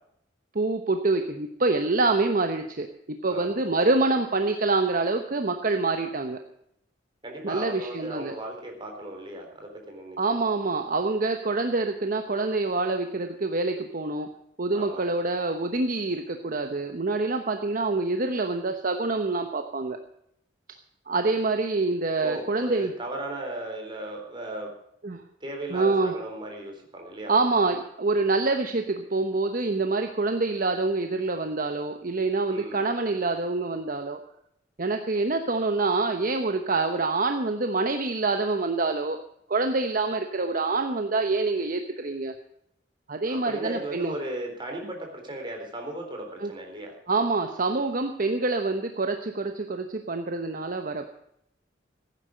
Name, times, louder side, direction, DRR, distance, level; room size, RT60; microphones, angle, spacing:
voice 1, 0.5-6.4 7.4-8.3 10.2-14.3 14.6-20.0 21.1-22.9 25.0-25.2 25.7-26.1 27.3-34.2 34.8-39.2 39.5-42.3 43.1-44.1 46.4-46.5 47.1-51.1, right 3 dB, 50° right, 6 dB, 1.0 m, -26 dB
voice 2, 3.3-3.6 7.2-10.5 14.7-15.1 22.2-24.7 25.4-27.3 32.5-32.8 43.3-46.9, right 1 dB, 25° right, 2 dB, 4.0 m, -36 dB
16.0 x 9.7 x 6.4 m, 0.74 s
head